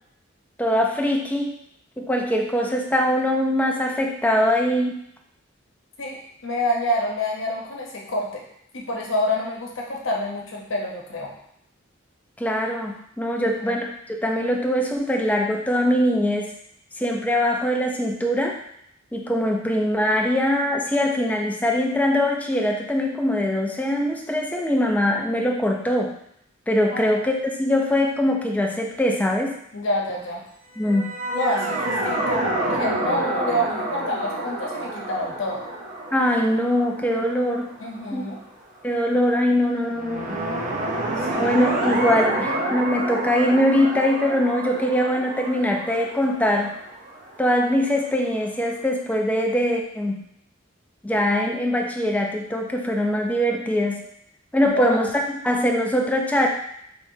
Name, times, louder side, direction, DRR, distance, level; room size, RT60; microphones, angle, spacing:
voice 1, 0.6-1.5 2.0-5.0 12.4-16.5 17.0-18.6 19.1-26.1 26.7-29.6 30.8-31.1 36.1-37.7 38.1-38.2 38.8-40.4 41.4-46.7 47.4-50.2 51.0-54.0 54.5-55.1 55.4-56.5, equal, 10° left, 1 dB, 0.5 m, -22 dB
voice 2, 6.0-8.4 8.7-11.3 13.4-13.8 26.9-27.1 29.7-30.4 31.3-35.6 37.8-38.4 41.2-41.5 54.6-55.0, left 1 dB, 85° left, -1 dB, 0.9 m, -27 dB
sound 1, 30.8-38.0 39.9-47.7, right 1 dB, 45° right, 0.6 m, -28 dB
4.4 x 3.3 x 2.7 m, 0.72 s
head